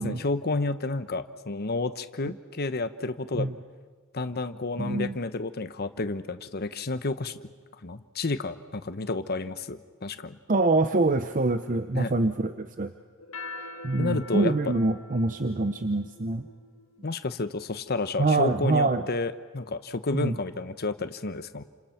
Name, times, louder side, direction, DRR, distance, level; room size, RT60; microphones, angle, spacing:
voice 1, 0.0-3.5 4.1-7.4 7.8-10.4 11.9-12.1 14.0-14.7 17.0-21.6, left 3 dB, 50° left, 11 dB, 1.0 m, -31 dB
voice 2, 4.8-5.1 10.5-12.9 13.8-16.5 18.2-19.0 20.1-20.3, right 2 dB, 40° right, 9 dB, 0.8 m, -25 dB
sound 1, 13.2-17.9, left 3 dB, 70° left, 2.2 m, -44 dB
29.5 x 27.0 x 5.9 m, 1.5 s
head